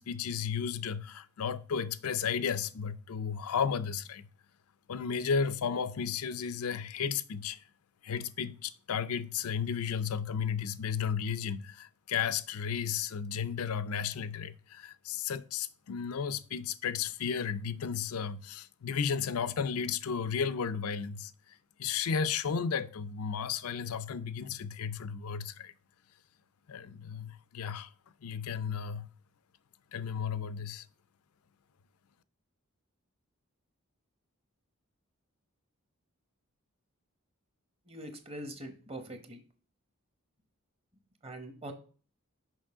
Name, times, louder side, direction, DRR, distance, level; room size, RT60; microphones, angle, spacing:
voice 1, 0.0-4.3 4.9-7.6 8.0-25.7 26.7-27.9 28.2-29.1 29.9-30.9, left 6 dB, 85° left, 0.5 m, -34 dB
voice 2, 37.9-39.4 41.2-41.7, right 1 dB, 25° right, 1.0 m, -43 dB
6.2 x 5.5 x 3.6 m
head